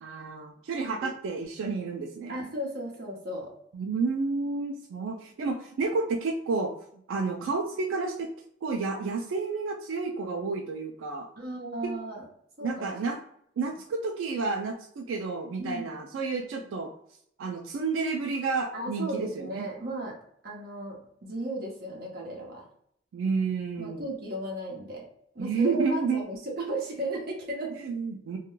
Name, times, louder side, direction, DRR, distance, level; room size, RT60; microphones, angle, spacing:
voice 1, 0.0-2.4 3.7-6.7 7.1-8.3 8.6-11.3 11.8-11.9 12.6-13.2 13.6-16.9 17.4-19.7 23.1-24.0 25.4-26.2 27.8-28.4, right 4 dB, 85° right, 2 dB, 0.3 m, -30 dB
voice 2, 2.3-3.5 11.4-12.3 12.6-12.9 15.6-15.9 16.6-16.7 18.7-20.2 20.4-22.7 23.8-25.1 25.3-27.8, right 1 dB, 50° right, -2 dB, 0.8 m, -35 dB
2.3 x 2.2 x 3.0 m, 0.69 s
head